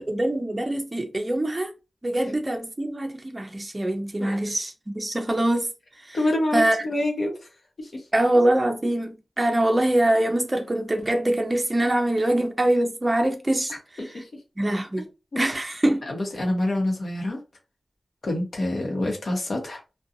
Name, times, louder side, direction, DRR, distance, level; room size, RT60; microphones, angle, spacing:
voice 1, 0.0-1.7 2.0-5.7 6.1-6.2 6.5-6.8 8.1-13.7 14.1-14.2 14.6-15.1 15.4-16.1, right 1 dB, 25° right, 0.6 m, -24 dB
voice 2, 6.1-7.3 7.8-8.0 14.0-14.3 15.0-15.1 15.3-15.4 16.1-17.4 18.2-19.8, left 1 dB, 65° left, 1.0 m, -26 dB
2.5 x 2.3 x 2.7 m
wide cardioid pair, 75°, 0 cm